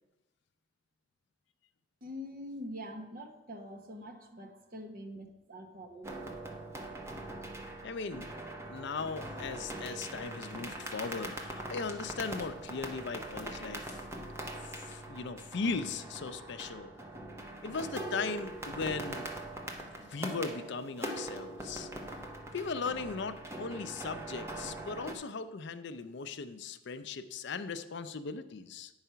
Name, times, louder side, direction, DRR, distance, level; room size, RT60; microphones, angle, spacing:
voice 1, 2.0-6.1, equal, 45° right, 3 dB, 1.0 m, -44 dB
sound 1, 6.0-25.1, right 1 dB, 15° right, 0.7 m, -42 dB
voice 2, 7.8-8.3 8.7-14.1 14.6-16.9 17.6-19.3 19.8-21.9 22.5-28.9, left 4 dB, 55° left, 10 dB, 0.5 m, -38 dB
9.2 x 4.8 x 5.6 m, 1.0 s
head